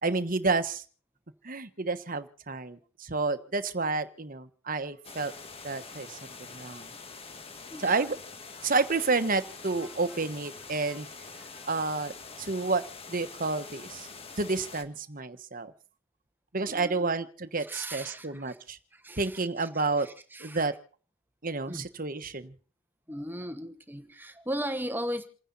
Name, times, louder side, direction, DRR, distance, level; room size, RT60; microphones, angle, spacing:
voice 1, 0.0-0.8 1.4-5.3 5.6-6.2 6.5-6.9 7.8-8.2 8.6-11.1 11.7-14.1 14.4-15.7 16.5-18.8 19.2-20.1 20.4-20.7 21.4-22.5, right 3 dB, 40° right, 10 dB, 1.2 m, -30 dB
sound 1, 5.0-14.8, left 4 dB, 30° left, 1.6 m, -45 dB
voice 2, 16.6-17.1 17.6-18.6 18.9-20.7 21.7-21.8 23.1-25.3, equal, 10° right, 9 dB, 1.3 m, -38 dB
29.0 x 10.0 x 4.1 m, 0.42 s
head